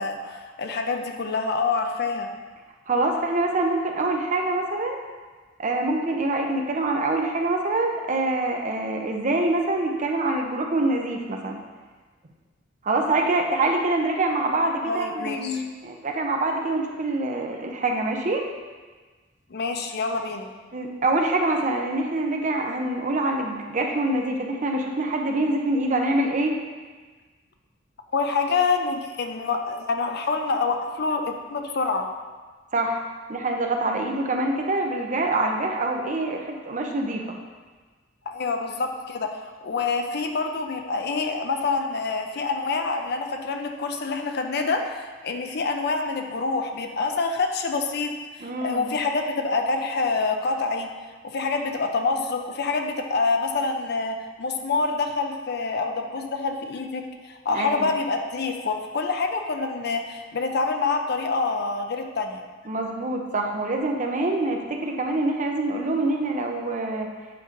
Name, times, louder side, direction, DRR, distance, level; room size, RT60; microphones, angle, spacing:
voice 1, 0.0-2.3 14.9-15.6 19.5-20.5 28.1-32.1 38.3-50.9 51.3-62.4, left 4 dB, 55° left, 4 dB, 0.6 m, -26 dB
voice 2, 2.9-5.0 5.6-11.6 12.8-18.5 20.7-26.6 32.7-33.0 33.3-37.4 48.4-48.9 57.5-58.0 62.7-67.1, right 2 dB, 40° right, 2 dB, 0.7 m, -25 dB
7.9 x 3.1 x 5.0 m, 1.4 s
head